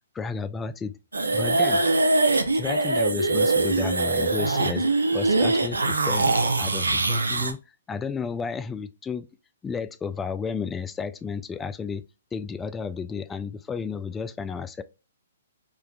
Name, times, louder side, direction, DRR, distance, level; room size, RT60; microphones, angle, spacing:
voice 1, 0.1-0.9 1.3-1.8 2.5-4.9 5.1-5.8 6.1-7.6 7.9-9.3 9.6-12.0 12.3-14.8, left 5 dB, 15° left, 0.3 m, -32 dB
sound 1, 1.1-7.5, right 2 dB, 90° right, 0.5 m, -23 dB
5.0 x 2.2 x 2.2 m
hypercardioid pair, 125°, 0 cm